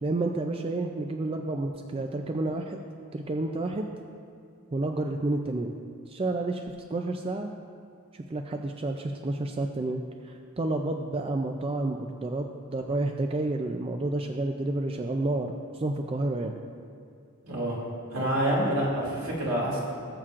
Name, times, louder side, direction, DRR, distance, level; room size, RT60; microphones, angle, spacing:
voice 1, 0.0-2.8 3.1-3.9 4.7-5.8 6.1-6.6 6.9-7.5 8.1-15.5 15.7-16.5, right 2 dB, 25° right, 4 dB, 0.4 m, -30 dB
voice 2, 17.4-17.8 18.1-19.8, right 1 dB, 75° right, -5 dB, 2.5 m, -27 dB
18.0 x 7.4 x 2.5 m, 2.4 s
head